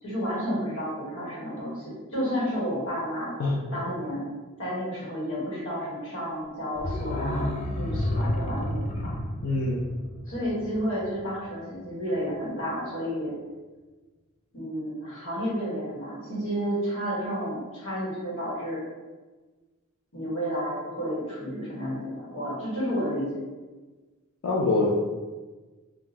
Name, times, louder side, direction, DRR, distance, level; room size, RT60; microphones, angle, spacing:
voice 1, 0.0-3.3 3.7-4.2 4.6-9.1 10.3-13.3 14.5-18.8 20.1-23.3, equal, 65° left, -7 dB, 1.5 m, -31 dB
sound 1, 6.7-11.5 11.8-11.9, left 1 dB, 30° left, 0.4 m, -31 dB
voice 2, 9.4-9.8 24.4-25.0, left 2 dB, 90° left, -5 dB, 0.5 m, -24 dB
3.6 x 2.4 x 2.9 m, 1.3 s
head